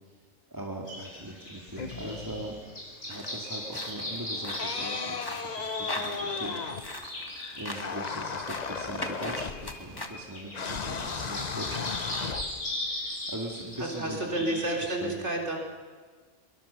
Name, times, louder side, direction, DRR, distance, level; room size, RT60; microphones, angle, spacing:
voice 1, 0.5-2.6 3.0-6.6 6.8-7.1 7.5-15.2, right 1 dB, 15° right, 0 dB, 2.1 m, -41 dB
sound 1, 0.9-14.8, left 1 dB, 75° left, 6.7 m, -39 dB
sound 2, 1.7-2.7 4.4-7.1 7.8-10.0 10.5-12.9, left 5 dB, 40° left, 0.8 m, -36 dB
sound 3, 3.1-10.1, left 2 dB, 20° left, 1.5 m, -42 dB
voice 2, 13.8-15.6, right 1 dB, 65° right, 0 dB, 4.0 m, -30 dB
23.0 x 22.5 x 6.8 m, 1.5 s
omnidirectional pair, 1.3 m